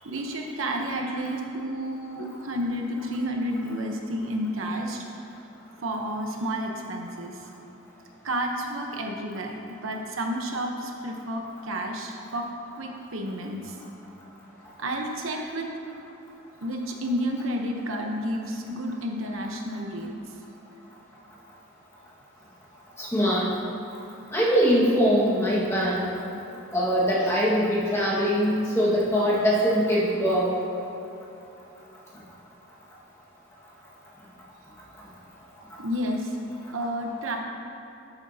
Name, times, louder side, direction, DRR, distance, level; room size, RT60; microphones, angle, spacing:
voice 1, 0.0-5.3 5.8-7.5 8.2-12.5 12.8-13.8 14.8-15.7 16.6-20.1 35.8-36.4 36.7-37.4, equal, 80° right, 2 dB, 0.9 m, -31 dB
voice 2, 23.0-23.5 24.3-26.1 26.7-30.5, equal, 15° left, -7 dB, 1.6 m, -22 dB
11.5 x 8.1 x 2.8 m, 3.0 s
head